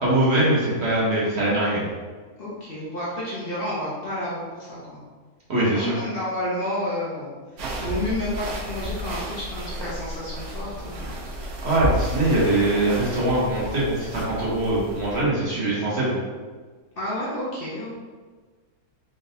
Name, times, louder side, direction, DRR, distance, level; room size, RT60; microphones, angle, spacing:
voice 1, 0.0-1.8 5.5-5.9 7.8-7.9 11.4-16.2, right 1 dB, 50° right, -7 dB, 1.2 m, -22 dB
voice 2, 2.4-5.0 5.7-7.3 7.5-11.1 17.0-17.9, left 1 dB, 45° left, -7 dB, 0.9 m, -30 dB
sound 1, 7.6-15.2, right 1 dB, 75° right, 1.1 m, -32 dB
3.8 x 3.6 x 2.6 m, 1.4 s
omnidirectional pair, 1.6 m